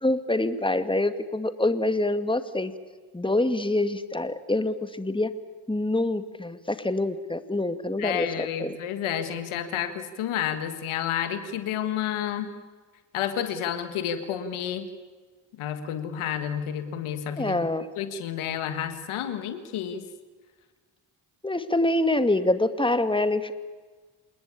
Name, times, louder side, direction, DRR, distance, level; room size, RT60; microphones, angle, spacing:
voice 1, 0.0-2.7 3.1-5.3 5.7-8.8 17.4-17.9 21.4-23.5, left 2 dB, 10° left, 10 dB, 2.1 m, -25 dB
voice 2, 8.0-12.5 13.1-14.9 15.6-17.7 18.0-20.0, left 9 dB, 80° left, 10 dB, 1.8 m, -30 dB
28.0 x 20.0 x 8.6 m, 1.4 s
hypercardioid pair, 40°, 48 cm